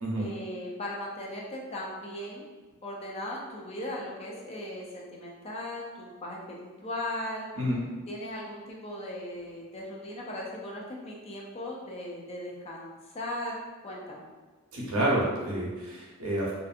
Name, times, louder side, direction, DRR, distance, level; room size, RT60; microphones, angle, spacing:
voice 1, 0.2-2.5 2.8-7.5 8.1-14.3, left 1 dB, 25° left, -3 dB, 0.4 m, -38 dB
voice 2, 14.7-16.5, right 1 dB, 65° right, -4 dB, 0.7 m, -29 dB
2.5 x 2.5 x 2.4 m, 1.3 s
head